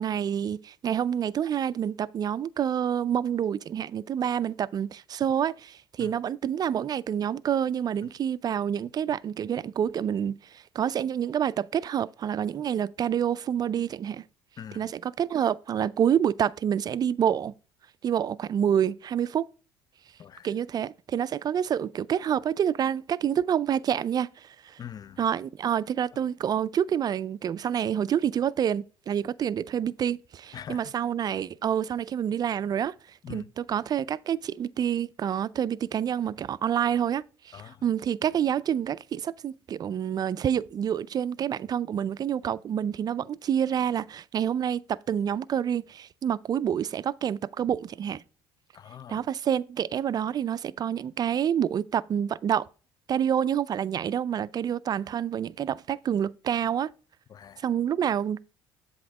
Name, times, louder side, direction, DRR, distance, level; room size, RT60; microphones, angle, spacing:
voice 1, 0.0-14.2 14.7-17.5 18.0-19.4 20.4-24.8 25.2-32.9 33.3-48.2 49.1-52.7 53.1-56.9 57.6-58.4, right 9 dB, 35° right, 0.3 m, -28 dB
voice 2, 14.6-14.9 20.2-20.5 24.8-25.2 30.5-30.9 33.2-33.5 37.5-37.8 48.7-49.2 57.3-57.7, left 9 dB, 35° left, 0.4 m, -43 dB
7.7 x 3.5 x 4.7 m
hypercardioid pair, 65°, 11 cm